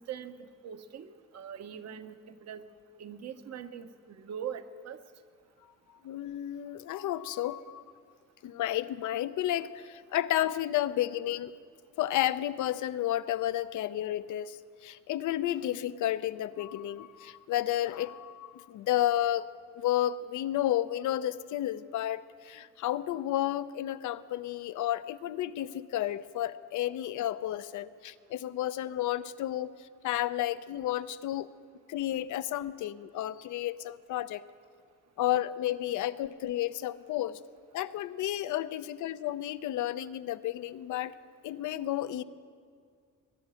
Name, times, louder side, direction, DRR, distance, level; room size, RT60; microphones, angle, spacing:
voice 1, 0.0-2.6 3.0-5.0, right 8 dB, 60° right, 10 dB, 0.9 m, -42 dB
voice 2, 6.0-7.8 8.4-11.5 12.0-19.5 19.8-31.5 31.9-34.4 35.2-37.4 37.7-41.1 41.4-42.2, left 13 dB, 75° left, 14 dB, 0.6 m, -32 dB
21.0 x 10.5 x 6.3 m, 2.1 s
cardioid pair, 90°, 30 cm